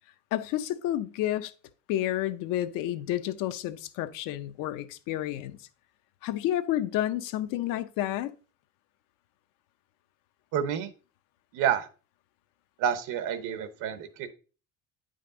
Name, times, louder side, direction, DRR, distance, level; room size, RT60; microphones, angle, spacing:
voice 1, 0.3-1.5 1.9-5.6 6.2-8.3, left 13 dB, 85° left, 0.7 m, -30 dB
voice 2, 10.5-10.9 11.5-11.9 12.8-14.3, right 9 dB, 80° right, 1.0 m, -29 dB
9.2 x 5.2 x 3.8 m
cardioid pair, 160°, 32 cm